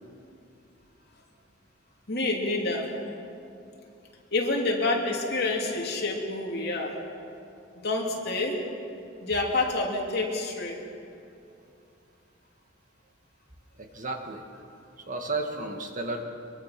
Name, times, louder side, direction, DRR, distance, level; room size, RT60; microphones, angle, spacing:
voice 1, 2.1-3.0 4.3-7.0 7.8-8.6 9.2-10.8, left 2 dB, 50° left, -1 dB, 3.1 m, -28 dB
voice 2, 13.8-14.5 15.0-16.2, right 2 dB, 40° right, 4 dB, 1.8 m, -33 dB
24.0 x 23.0 x 6.0 m, 2.6 s
head